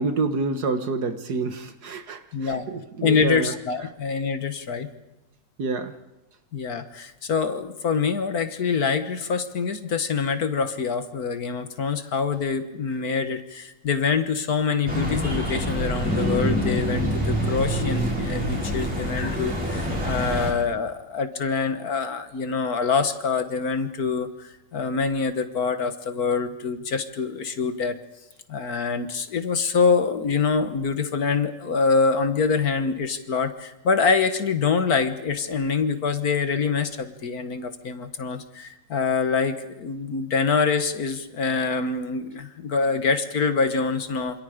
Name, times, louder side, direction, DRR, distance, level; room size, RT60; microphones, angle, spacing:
voice 1, 0.0-3.5 5.6-6.0, right 3 dB, 60° right, 1.8 m, -28 dB
voice 2, 2.3-2.7 3.0-4.9 6.5-27.9 28.5-44.4, left 5 dB, 55° left, 1.7 m, -25 dB
sound 1, 14.9-20.5, equal, 5° right, 5.7 m, -26 dB
27.0 x 27.0 x 5.1 m
omnidirectional pair, 1.9 m